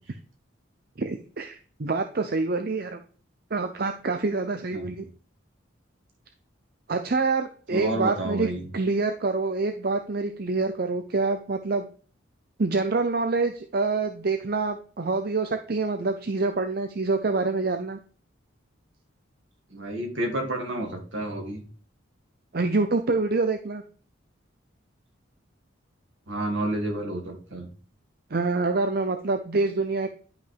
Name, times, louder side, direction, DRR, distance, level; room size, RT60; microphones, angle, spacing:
voice 1, 1.0-3.0 3.5-5.0 6.9-11.9 12.6-18.0 22.5-23.8 28.3-30.1, right 3 dB, 50° right, 6 dB, 0.6 m, -26 dB
voice 2, 7.7-8.6 19.7-21.6 26.3-27.7, right 1 dB, 70° right, 1 dB, 2.6 m, -30 dB
11.0 x 5.4 x 3.5 m, 0.40 s
head